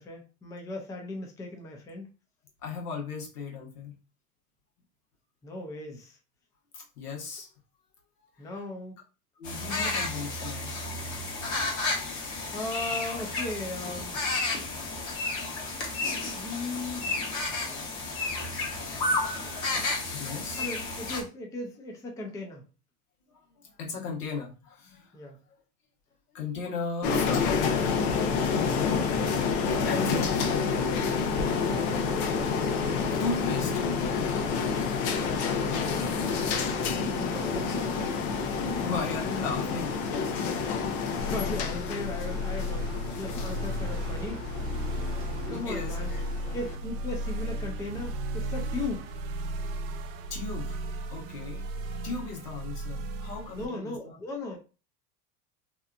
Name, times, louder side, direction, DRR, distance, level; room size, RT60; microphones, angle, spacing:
voice 1, 0.0-2.0 5.4-6.2 8.4-8.9 10.3-10.4 12.5-14.2 16.4-17.1 20.6-22.6 25.1-25.4 36.7-38.2 38.8-38.9 40.6-44.4 45.5-46.1 46.5-49.1 53.5-54.6, left 2 dB, 10° left, 2 dB, 0.4 m, -37 dB
voice 2, 2.6-4.0 6.7-7.5 8.4-8.6 9.4-10.7 17.9-18.0 19.6-19.7 20.1-20.7 23.3-25.3 26.3-29.1 29.8-31.1 33.1-34.5 38.8-40.3 45.5-46.2 50.3-50.8 51.1-51.7 52.0-54.2, left 5 dB, 85° left, -1 dB, 1.2 m, -37 dB
sound 1, 9.4-21.2, left 3 dB, 40° left, 1.1 m, -32 dB
sound 2, 27.0-46.7, left 5 dB, 65° left, 0.7 m, -29 dB
sound 3, 41.2-53.7, equal, 50° right, 0.5 m, -34 dB
2.8 x 2.3 x 2.4 m, 0.33 s
hypercardioid pair, 100°, 45 cm